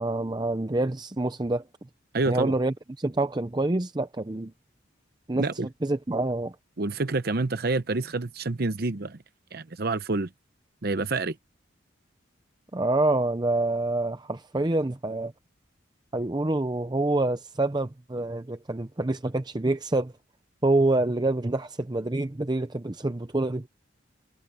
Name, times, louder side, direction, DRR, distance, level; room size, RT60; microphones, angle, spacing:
voice 1, 0.0-1.6 2.3-4.5 5.3-5.5 5.8-6.6 12.7-15.3 16.1-20.1 20.6-23.7, right 2 dB, 20° right, 0.6 m, -26 dB
voice 2, 2.1-2.5 5.4-5.7 6.8-9.2 9.5-10.3 10.8-11.4, right 3 dB, 50° right, 0.8 m, -28 dB
head